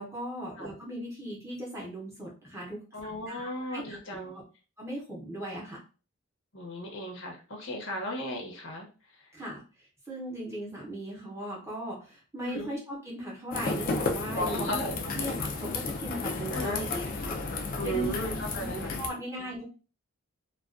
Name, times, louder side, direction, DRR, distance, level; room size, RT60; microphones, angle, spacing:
voice 1, 0.0-2.8 3.3-4.2 4.8-5.8 9.3-14.7 15.1-18.1 18.6-19.6, right 1 dB, 10° right, -4 dB, 0.7 m, -38 dB
voice 2, 2.9-4.4 6.5-8.9 12.4-12.7 14.3-15.0 16.5-16.8 17.8-18.9 19.4-19.5, equal, 55° left, 1 dB, 0.7 m, -35 dB
sound 1, 13.5-19.1, left 3 dB, 40° left, 0.3 m, -33 dB
2.3 x 2.2 x 2.4 m, 0.35 s
head